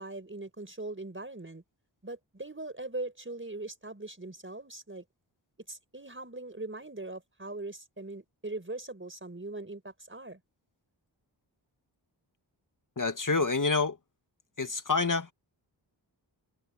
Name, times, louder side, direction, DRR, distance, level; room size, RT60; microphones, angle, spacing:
voice 1, 0.0-1.6 2.0-5.0 5.7-10.4, right 2 dB, 25° right, 5.2 m, -40 dB
voice 2, 13.0-14.0 14.6-15.3, left 4 dB, 45° left, 2.0 m, -27 dB
wide cardioid pair, 65°, 45 cm